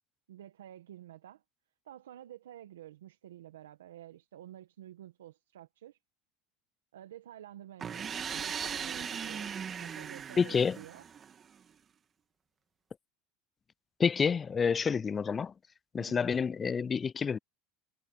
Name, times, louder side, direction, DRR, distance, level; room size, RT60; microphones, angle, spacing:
voice 1, 0.3-1.4 1.8-6.0 6.9-9.5 9.8-11.0 15.9-16.2, right 12 dB, 90° right, 1.5 m, -50 dB
sound 1, 7.8-11.6, right 7 dB, 35° right, 2.3 m, -38 dB
voice 2, 10.4-10.8 14.0-15.5 15.9-17.4, left 6 dB, 30° left, 0.4 m, -28 dB
hypercardioid pair, 85°, 0 cm